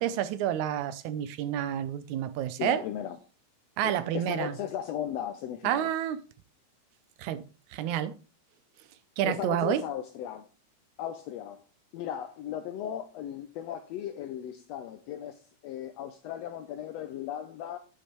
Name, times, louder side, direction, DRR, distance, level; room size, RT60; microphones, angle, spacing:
voice 1, 0.0-2.8 3.8-4.6 5.6-6.2 7.2-7.4 7.7-8.2 9.2-9.8, right 11 dB, 80° right, 1.9 m, -29 dB
voice 2, 2.6-3.2 3.8-5.9 9.2-10.5 11.0-11.6 11.9-17.8, left 10 dB, 85° left, 1.5 m, -36 dB
8.4 x 7.8 x 3.0 m
omnidirectional pair, 3.5 m